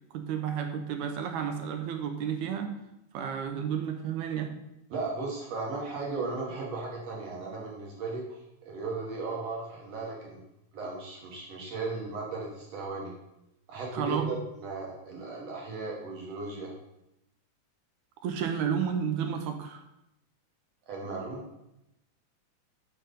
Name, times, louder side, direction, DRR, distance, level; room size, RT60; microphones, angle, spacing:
voice 1, 0.1-2.7 3.1-4.6 13.9-14.3 18.2-19.8, right 7 dB, 80° right, 6 dB, 1.9 m, -31 dB
voice 2, 4.9-10.4 10.7-13.1 13.7-16.7 20.9-21.5, right 3 dB, 60° right, -2 dB, 2.0 m, -36 dB
5.1 x 4.6 x 5.0 m, 0.86 s
omnidirectional pair, 3.6 m